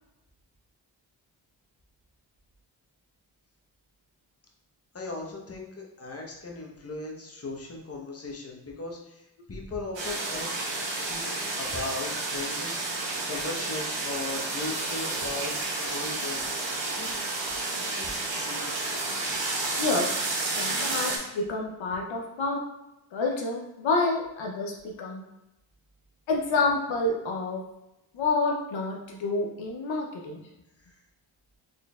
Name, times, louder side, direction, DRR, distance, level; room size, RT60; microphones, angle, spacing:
voice 1, 4.9-9.2 9.5-10.5 11.1-11.3 11.5-16.7 17.0-17.1 17.4-18.8 30.9-31.0, left 2 dB, 30° left, -1 dB, 1.0 m, -38 dB
sound 1, 9.9-21.2, right 2 dB, 70° right, 1.1 m, -31 dB
voice 2, 19.8-20.2 20.6-22.6 23.1-25.2 26.3-27.6 28.1-30.4, left 3 dB, 75° left, 1 dB, 0.7 m, -28 dB
4.3 x 3.1 x 2.3 m, 0.91 s
supercardioid pair, 45°, 47 cm